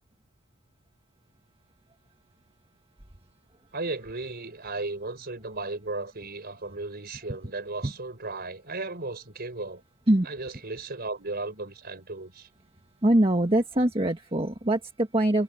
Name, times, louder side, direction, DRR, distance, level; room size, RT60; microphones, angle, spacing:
voice 1, 3.7-9.8 10.2-12.5, right 3 dB, 45° right, 5.0 m, -35 dB
voice 2, 13.0-15.4, right 1 dB, 25° right, 1.5 m, -23 dB
head